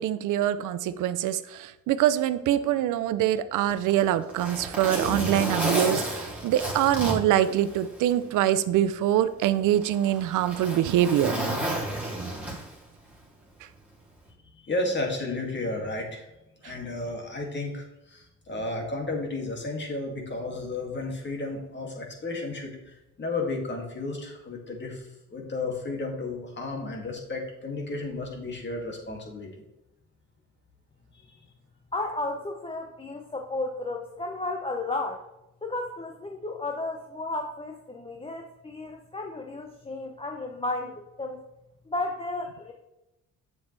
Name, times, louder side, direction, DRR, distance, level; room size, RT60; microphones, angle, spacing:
voice 1, 0.0-11.3, right 12 dB, 85° right, 13 dB, 0.6 m, -24 dB
Zipper (clothing), 3.7-8.2 8.6-8.7 9.4-12.9 14.1-14.3, right 1 dB, 5° right, 2.9 m, -31 dB
voice 2, 14.6-16.3 16.6-29.5 31.1-31.4, left 2 dB, 35° left, 1 dB, 2.4 m, -33 dB
voice 3, 31.9-35.2 35.6-41.4 41.9-42.7, left 2 dB, 20° left, 2 dB, 0.8 m, -33 dB
7.9 x 7.1 x 3.3 m, 0.93 s
cardioid pair, 90°, 30 cm